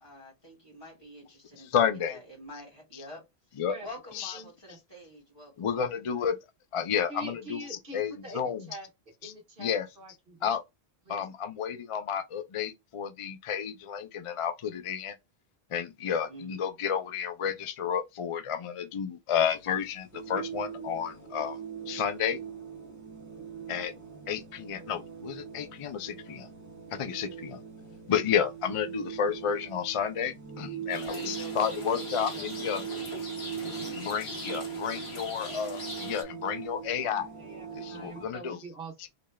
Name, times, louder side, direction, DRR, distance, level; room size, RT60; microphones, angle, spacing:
voice 1, 0.0-1.7 2.1-3.2 3.8-6.2 16.0-16.6 31.1-34.1, left 1 dB, 25° left, 2.4 m, -48 dB
voice 2, 1.6-2.2 2.9-3.0 3.6-3.8 4.1-4.4 5.6-6.4 6.7-8.6 9.2-9.3 9.6-9.9 10.4-10.6 11.1-15.2 15.7-21.6 21.9-22.4 23.7-23.9 24.3-26.5 26.9-27.6 28.1-32.8 33.9-37.3 37.7-38.6, left 8 dB, 45° left, 0.4 m, -31 dB
voice 3, 4.3-4.8 7.1-8.9 9.2-10.5 11.1-11.2 37.4-39.1, right 1 dB, 55° right, 1.7 m, -44 dB
sound 1, 19.5-38.3, right 8 dB, 15° right, 1.1 m, -41 dB
Rain, 30.9-36.2, left 2 dB, 80° left, 1.5 m, -41 dB
3.9 x 3.2 x 2.2 m
omnidirectional pair, 1.1 m